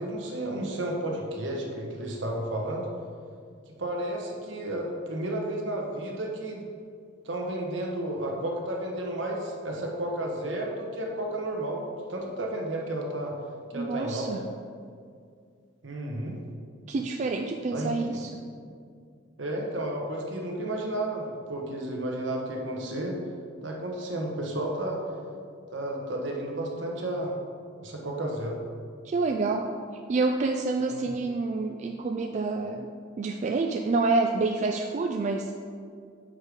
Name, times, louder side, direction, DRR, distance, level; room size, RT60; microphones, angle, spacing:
voice 1, 0.0-2.9 3.8-6.6 7.2-11.8 12.1-13.3 13.7-14.3 15.8-16.4 17.7-18.2 19.4-23.2 23.6-25.0 25.7-27.3 27.8-28.6 30.8-31.1, right 1 dB, 65° right, 0 dB, 1.2 m, -32 dB
voice 2, 13.7-14.4 16.9-18.3 29.0-29.7 30.1-32.9 33.2-35.5, right 3 dB, 40° right, 3 dB, 0.3 m, -27 dB
6.5 x 4.8 x 5.1 m, 2.2 s
head